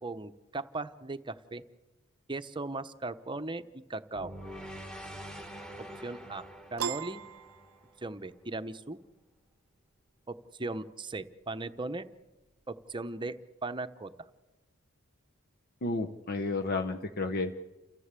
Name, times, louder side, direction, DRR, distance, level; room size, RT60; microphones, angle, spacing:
voice 1, 0.0-1.6 2.3-3.6 3.9-4.4 6.0-7.2 8.0-9.0 10.3-12.1 12.7-13.4 13.6-14.1, right 2 dB, 25° right, 10 dB, 0.9 m, -38 dB
sound 1, 4.1-8.4, equal, 5° left, 1.8 m, -45 dB
Piano, 6.8-8.3, right 7 dB, 85° right, 0.7 m, -37 dB
voice 2, 15.8-17.5, left 3 dB, 50° left, 5 dB, 0.9 m, -32 dB
29.0 x 14.5 x 8.2 m, 1.1 s
head